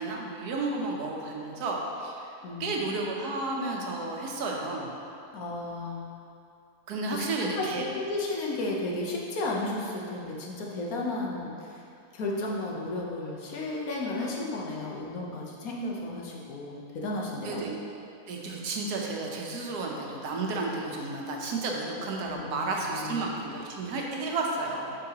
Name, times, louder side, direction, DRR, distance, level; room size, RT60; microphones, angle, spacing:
voice 1, 0.0-2.3 2.6-4.9 6.9-7.8 17.4-17.8 18.3-24.9, right 3 dB, 85° right, 0 dB, 1.4 m, -32 dB
voice 2, 2.4-2.8 5.3-6.1 7.1-11.8 12.1-17.6 22.2-23.3, left 2 dB, 70° left, -2 dB, 1.3 m, -33 dB
7.7 x 5.7 x 2.9 m, 2.6 s
omnidirectional pair, 1.6 m